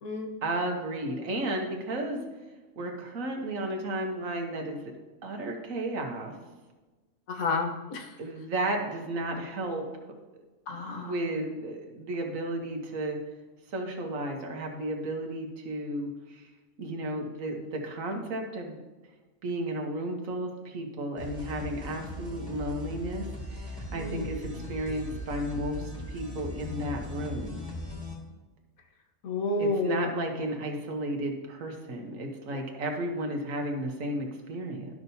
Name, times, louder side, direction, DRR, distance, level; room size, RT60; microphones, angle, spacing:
voice 1, 0.4-2.2 2.8-4.8 5.2-6.3 8.2-9.8 10.7-13.2 13.7-16.5 16.8-18.8 19.4-23.2 23.5-27.6 29.6-34.9, right 1 dB, 70° right, 2 dB, 1.5 m, -33 dB
voice 2, 7.3-8.1 10.7-11.1 23.9-24.3 29.2-30.0 32.5-32.6, left 3 dB, 85° left, 3 dB, 1.4 m, -30 dB
sound 1, 21.2-28.1, left 1 dB, 5° left, 1.8 m, -39 dB
12.0 x 6.1 x 2.7 m, 1.2 s
omnidirectional pair, 1.4 m